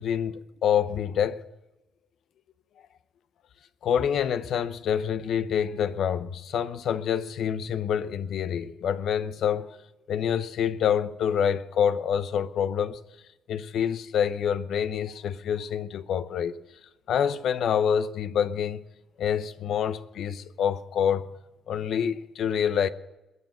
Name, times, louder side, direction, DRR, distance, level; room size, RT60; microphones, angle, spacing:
voice 1, 0.0-1.5 3.8-9.8 10.1-13.0 13.5-16.5 17.1-18.8 19.2-21.3 21.7-22.9, left 8 dB, 70° left, 0.8 m, -27 dB
21.0 x 7.3 x 7.6 m
cardioid pair, 90°, 0 cm